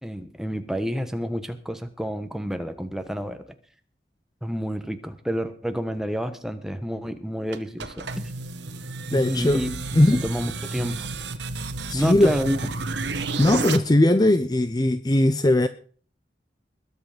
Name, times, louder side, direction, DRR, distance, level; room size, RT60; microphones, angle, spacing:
voice 1, 0.0-3.5 4.4-8.1 9.1-9.7 10.1-11.1 11.9-12.6, equal, 5° right, 7 dB, 1.3 m, -29 dB
sound 1, 7.5-13.8, right 3 dB, 90° right, 1.3 m, -31 dB
voice 2, 9.1-9.6 9.9-10.2 11.9-12.4 13.4-15.7, left 1 dB, 25° left, 12 dB, 0.6 m, -19 dB
21.0 x 8.3 x 5.1 m, 0.44 s
head